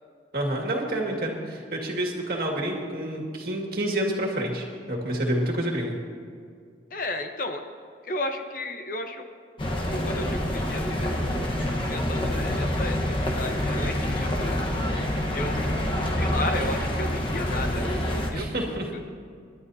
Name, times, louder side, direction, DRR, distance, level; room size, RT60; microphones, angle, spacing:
voice 1, 0.3-6.0 18.3-18.9, right 1 dB, 55° right, 0 dB, 2.1 m, -28 dB
voice 2, 6.9-7.6 8.0-9.2 9.9-11.2 11.9-14.6 15.3-15.7 16.1-19.0, left 1 dB, 50° left, 5 dB, 0.9 m, -33 dB
sound 1, 9.6-18.3, left 1 dB, 30° left, 1.2 m, -27 dB
27.5 x 11.5 x 2.8 m, 2.2 s
head